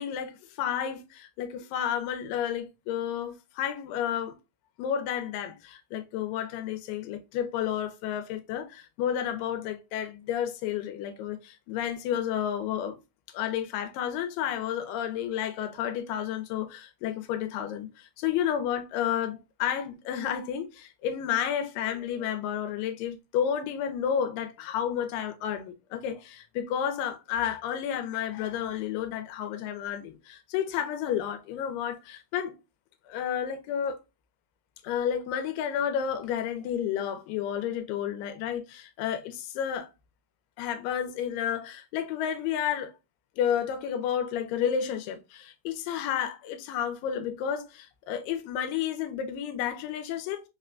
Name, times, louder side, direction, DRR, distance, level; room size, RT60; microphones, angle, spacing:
voice 1, 0.0-4.3 4.8-13.0 13.3-32.5 33.1-34.0 34.8-39.9 40.6-42.9 43.4-50.4, left 9 dB, 80° left, 2.3 m, -31 dB
5.5 x 2.1 x 2.4 m
omnidirectional pair, 4.0 m